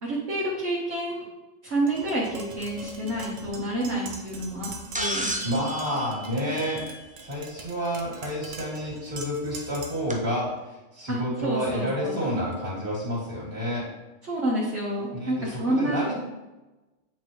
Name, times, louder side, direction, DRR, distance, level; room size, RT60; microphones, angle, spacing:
voice 1, 0.0-1.2 1.6-4.7 5.0-5.3 11.1-12.2 14.2-16.0, right 1 dB, 65° right, -6 dB, 1.5 m, -28 dB
Tap, 1.9-10.1, right 3 dB, 85° right, 1.1 m, -42 dB
sound 1, 4.9-7.3 8.8-8.9 10.1-10.2, equal, 10° right, 0.3 m, -32 dB
voice 2, 5.4-6.9 7.2-13.9 15.1-16.2, equal, 45° right, -5 dB, 2.4 m, -29 dB
8.0 x 4.6 x 3.0 m, 1.1 s
omnidirectional pair, 1.3 m